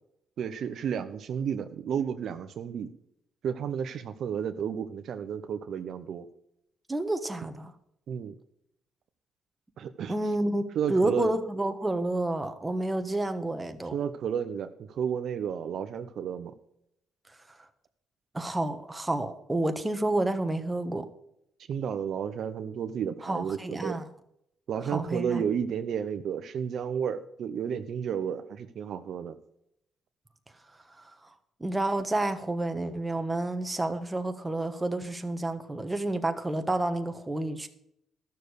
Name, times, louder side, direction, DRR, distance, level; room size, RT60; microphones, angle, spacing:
voice 1, 0.4-2.9 3.4-6.3 8.1-8.3 9.8-10.2 10.7-11.3 13.9-16.5 21.7-24.0 24.7-29.4, right 8 dB, 65° right, 0.8 m, -32 dB
voice 2, 6.9-7.7 10.1-10.6 10.9-13.9 18.3-21.1 23.2-24.0 24.9-25.4 31.6-37.7, right 2 dB, 15° right, 1.4 m, -29 dB
12.5 x 6.8 x 6.5 m
cardioid pair, 90°, 0 cm